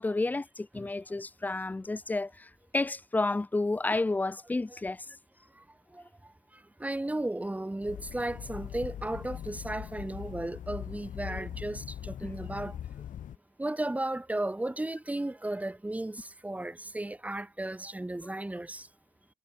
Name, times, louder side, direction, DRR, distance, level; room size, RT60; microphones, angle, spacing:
voice 1, 0.0-5.0 18.2-18.3, left 2 dB, 10° left, 0.6 m, -31 dB
voice 2, 6.8-12.8 13.6-18.9, right 1 dB, 10° right, 3.1 m, -34 dB
sound 1, 7.8-13.4, left 10 dB, 50° left, 1.4 m, -41 dB
cardioid pair, 110°, 17 cm